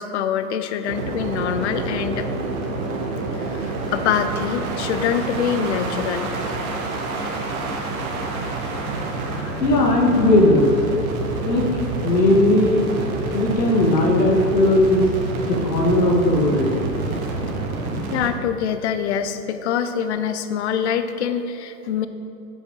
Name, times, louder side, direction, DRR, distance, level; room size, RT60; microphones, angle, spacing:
voice 1, 0.0-2.3 3.5-6.3 9.3-9.6 18.1-22.1, left 8 dB, 45° left, 10 dB, 0.5 m, -25 dB
sound 1, 0.8-18.3, right 3 dB, 60° right, 1.4 m, -28 dB
voice 2, 9.6-10.7 11.5-12.9 13.3-15.1 15.4-16.8, left 1 dB, 85° left, -1 dB, 1.8 m, -17 dB
7.9 x 5.3 x 5.3 m, 2.8 s
hypercardioid pair, 145°, 48 cm